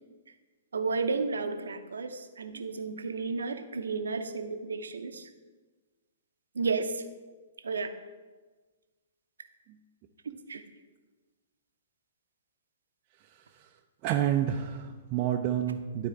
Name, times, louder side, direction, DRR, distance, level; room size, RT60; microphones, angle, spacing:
voice 1, 0.7-5.3 6.5-7.0 7.6-7.9 10.5-10.6, right 4 dB, 70° right, 7 dB, 0.7 m, -32 dB
voice 2, 13.2-13.7 14.0-16.1, right 10 dB, 35° right, 3 dB, 0.5 m, -30 dB
12.0 x 4.2 x 3.5 m, 1.3 s
figure-of-eight pair, 115°, 0 cm